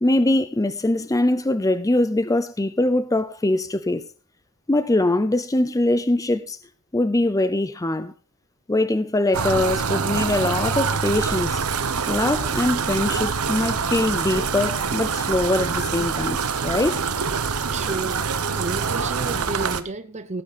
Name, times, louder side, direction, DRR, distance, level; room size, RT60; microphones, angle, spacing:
voice 1, 0.0-4.0 4.7-6.6 6.9-8.1 8.7-11.6 12.1-17.0, left 1 dB, 15° left, 0.6 m, -22 dB
sound 1, 9.3-19.8, right 5 dB, 75° right, 1.1 m, -25 dB
voice 2, 17.7-20.4, right 3 dB, 30° right, 0.8 m, -31 dB
17.0 x 8.2 x 4.3 m
head